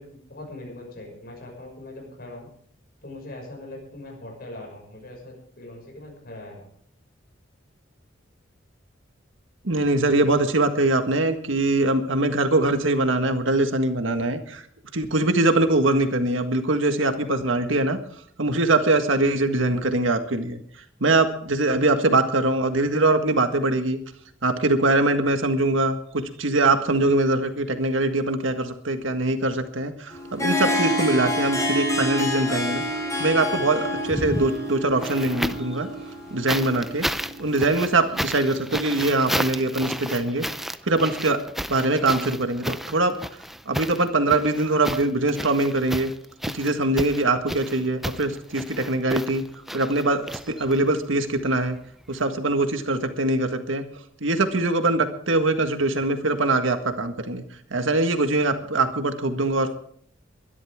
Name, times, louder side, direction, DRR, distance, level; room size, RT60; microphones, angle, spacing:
voice 1, 0.0-2.5 3.0-6.7, left 1 dB, 55° left, 0 dB, 6.3 m, -41 dB
voice 2, 9.6-14.6 14.9-18.0 18.4-20.6 21.0-24.0 24.4-32.8 33.2-35.9 36.3-37.1 37.4-40.4 40.8-41.4 41.7-43.2 43.7-46.1 46.5-49.4 49.7-51.8 52.1-53.8 54.2-57.4 57.7-59.7, right 2 dB, 80° right, 7 dB, 1.7 m, -22 dB
Harp, 30.1-37.8, left 1 dB, 15° left, 5.0 m, -28 dB
sound 1, 34.0-35.8 36.5-51.0 52.1-52.2, equal, ahead, 0.5 m, -32 dB
22.5 x 12.0 x 3.7 m, 0.63 s
head